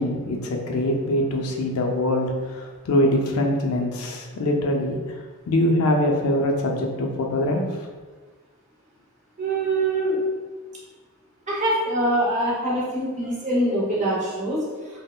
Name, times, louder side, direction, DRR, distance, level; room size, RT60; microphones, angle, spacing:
voice 1, 0.0-7.7, left 1 dB, 70° left, 2 dB, 0.4 m, -23 dB
voice 2, 9.4-10.2 11.5-14.6, right 1 dB, 30° right, -6 dB, 0.8 m, -24 dB
3.6 x 2.1 x 2.2 m, 1.4 s
head